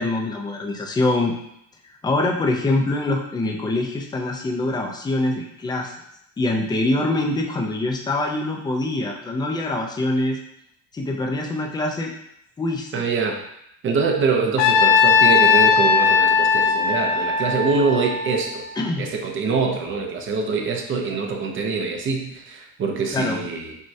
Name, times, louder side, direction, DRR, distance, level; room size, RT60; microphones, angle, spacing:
voice 1, 0.0-1.3 2.0-6.0 6.4-10.4 10.9-12.1 12.6-13.1 18.8-19.1 23.1-23.4, left 2 dB, 10° left, 2 dB, 0.4 m, -24 dB
voice 2, 12.9-13.4 13.8-18.6 19.0-23.8, right 4 dB, 35° right, 3 dB, 0.6 m, -24 dB
Trumpet, 14.6-18.8, left 5 dB, 90° left, 0.6 m, -18 dB
6.2 x 2.2 x 2.7 m, 0.77 s
cardioid pair, 135°, 38 cm